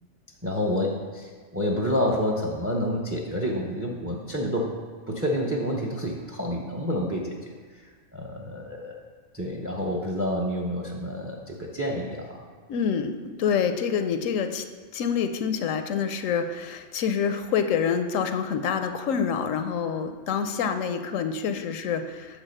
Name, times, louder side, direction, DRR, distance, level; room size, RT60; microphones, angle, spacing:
voice 1, 0.4-4.7 5.1-7.5 8.1-9.0 9.3-12.4, equal, 15° right, 0 dB, 0.6 m, -28 dB
voice 2, 12.7-14.6 14.9-22.4, left 7 dB, 80° left, 8 dB, 1.0 m, -27 dB
8.1 x 3.8 x 6.6 m, 1.5 s
omnidirectional pair, 1.3 m